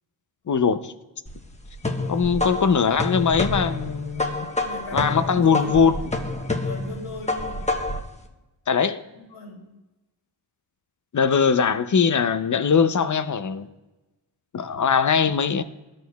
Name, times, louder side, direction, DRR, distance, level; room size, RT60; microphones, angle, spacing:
voice 1, 0.5-0.9 2.1-4.5 4.9-6.0 8.7-9.0 11.1-13.7 14.5-15.6, left 6 dB, 40° left, 0.6 m, -21 dB
sound 1, 1.3-8.1, left 2 dB, 15° left, 1.0 m, -28 dB
voice 2, 4.1-5.8 6.6-7.7 8.8-9.7, left 2 dB, 85° left, 2.0 m, -38 dB
12.5 x 6.3 x 2.3 m
cardioid pair, 60°, 48 cm